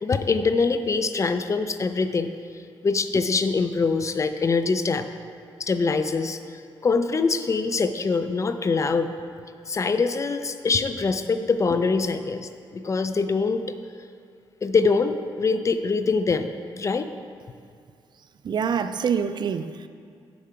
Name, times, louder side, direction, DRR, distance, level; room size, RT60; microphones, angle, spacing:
voice 1, 0.0-2.3 2.8-5.1 5.6-9.1 9.7-13.8 14.6-17.1, left 4 dB, 35° left, 10 dB, 0.4 m, -24 dB
voice 2, 18.4-19.9, right 7 dB, 50° right, 10 dB, 0.3 m, -26 dB
8.5 x 4.7 x 5.6 m, 2.2 s
cardioid pair, 110°, 9 cm